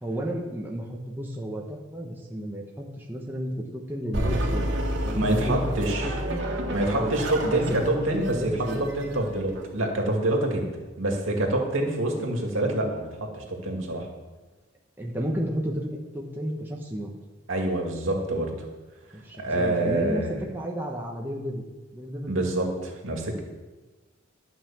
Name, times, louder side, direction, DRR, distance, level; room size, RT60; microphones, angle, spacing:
voice 1, 0.0-4.7 5.0-5.7 6.0-6.4 6.9-7.2 7.4-7.6 7.9-8.9 12.2-12.3 15.0-17.1 19.1-21.6 21.9-22.4, equal, 10° right, -1 dB, 1.1 m, -32 dB
sound 1, 4.1-9.6, equal, 60° right, 1.9 m, -30 dB
voice 2, 5.1-6.1 6.7-8.3 9.0-10.7 11.0-14.1 17.5-18.5 19.4-20.4 22.3-23.4, right 1 dB, 80° right, 1 dB, 2.2 m, -26 dB
12.0 x 5.7 x 7.3 m, 1.2 s
head